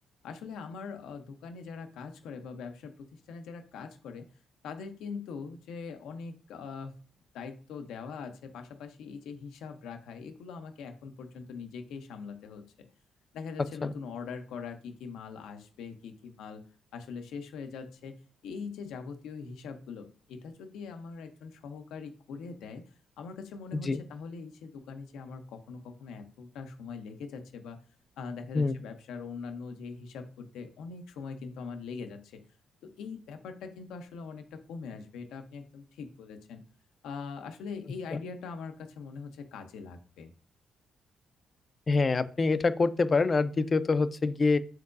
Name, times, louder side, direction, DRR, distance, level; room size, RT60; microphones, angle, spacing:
voice 1, 0.2-4.3 4.6-7.0 7.3-12.9 13.3-16.6 16.9-22.8 23.2-27.8 28.2-32.4 32.8-36.6 37.0-40.3, left 5 dB, 85° left, 7 dB, 0.6 m, -42 dB
voice 2, 41.9-44.6, left 3 dB, 35° left, 14 dB, 0.3 m, -25 dB
4.5 x 3.8 x 2.5 m, 0.39 s
cardioid pair, 90°, 0 cm